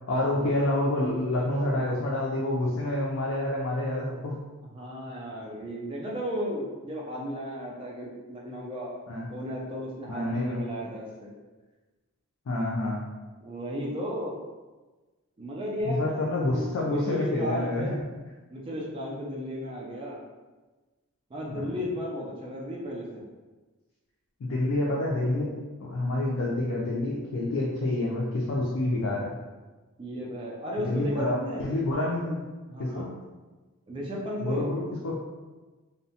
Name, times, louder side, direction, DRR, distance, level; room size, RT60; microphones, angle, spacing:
voice 1, 0.1-4.5 9.1-9.3 10.1-10.6 12.5-13.1 15.8-18.0 21.5-21.7 24.4-25.6 25.8-29.3 30.8-32.4 32.8-33.1 34.4-35.2, left 1 dB, 70° left, -3 dB, 0.4 m, -28 dB
voice 2, 4.7-8.9 9.3-11.3 13.4-14.4 15.4-17.9 18.5-20.2 21.3-23.2 30.0-31.7 32.7-33.1 33.9-34.7, equal, 25° right, -4 dB, 0.4 m, -34 dB
2.7 x 2.1 x 2.7 m, 1.2 s
head